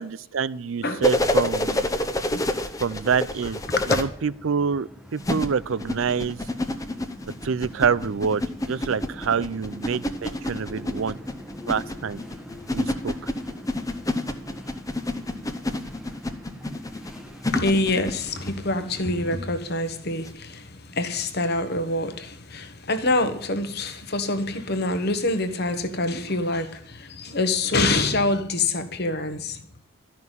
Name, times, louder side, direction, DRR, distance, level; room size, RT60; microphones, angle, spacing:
voice 1, 0.0-1.9 2.8-3.6 3.9-6.4 7.4-11.2 11.7-12.2 12.7-13.1, right 6 dB, 65° right, 18 dB, 0.5 m, -26 dB
sound 1, 0.9-19.4, equal, 5° right, 1.1 m, -44 dB
sound 2, 1.0-4.0 5.2-18.6 20.2-20.3, left 1 dB, 15° left, 0.8 m, -28 dB
voice 2, 3.7-4.0 17.5-29.6, left 2 dB, 50° left, 9 dB, 1.3 m, -26 dB
12.5 x 5.9 x 9.2 m, 0.64 s
head